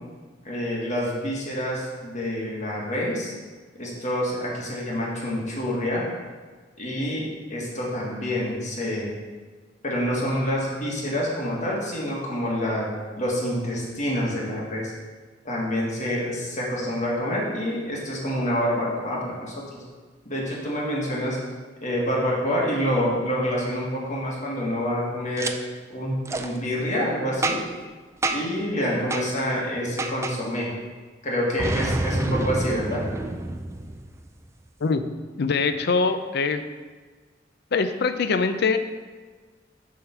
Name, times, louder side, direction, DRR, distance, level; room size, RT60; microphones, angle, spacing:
voice 1, 0.5-3.3 3.8-6.1 6.8-9.1 9.8-12.9 13.2-14.9 15.5-19.8 20.3-21.5 21.8-25.5 25.9-27.6 28.3-30.7 31.2-33.0, equal, 40° left, -4 dB, 1.7 m, -27 dB
Boom, 25.4-25.5 26.3-26.5 27.4-27.8 28.2-28.6 29.1-29.3 30.0-30.4 31.6-34.3, right 2 dB, 15° right, 0.3 m, -27 dB
voice 2, 35.4-36.6 37.7-38.8, left 4 dB, 60° left, 9 dB, 0.5 m, -23 dB
7.8 x 3.7 x 5.7 m, 1.4 s
head